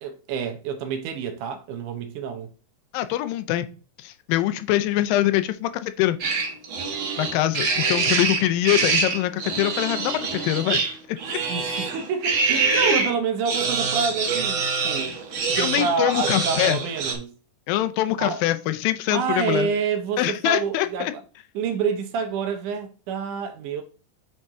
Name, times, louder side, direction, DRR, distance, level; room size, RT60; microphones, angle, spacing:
voice 1, 0.0-2.5 11.5-15.2 15.5-17.3 18.2-18.4 19.1-21.2 21.5-23.8, right 6 dB, 75° right, 2.1 m, -28 dB
voice 2, 2.9-3.7 4.0-6.2 7.2-11.4 12.5-13.0 15.6-16.8 17.7-19.7 20.2-21.1, left 14 dB, 90° left, 2.4 m, -24 dB
sound 1, 6.2-13.1 13.5-17.1, right 4 dB, 55° right, 1.5 m, -25 dB
8.0 x 4.3 x 3.6 m
omnidirectional pair, 4.0 m